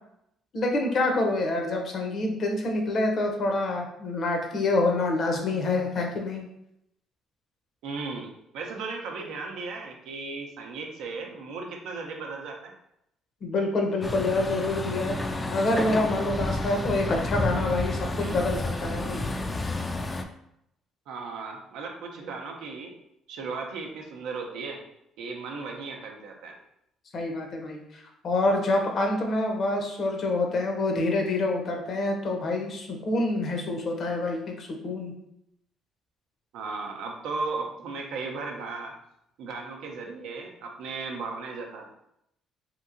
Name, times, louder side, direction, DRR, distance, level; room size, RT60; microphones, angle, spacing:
voice 1, 0.5-6.4 13.4-19.2 27.1-35.1, left 2 dB, 55° left, 2 dB, 0.7 m, -27 dB
voice 2, 7.8-12.7 18.2-18.4 21.1-22.9 23.3-24.8 25.2-26.6 36.5-38.9 39.4-41.9, right 4 dB, 75° right, 1 dB, 0.5 m, -36 dB
Truck, 14.0-20.2, left 2 dB, 25° left, 0.3 m, -30 dB
2.9 x 2.7 x 2.5 m, 0.78 s
supercardioid pair, 75°, 0 cm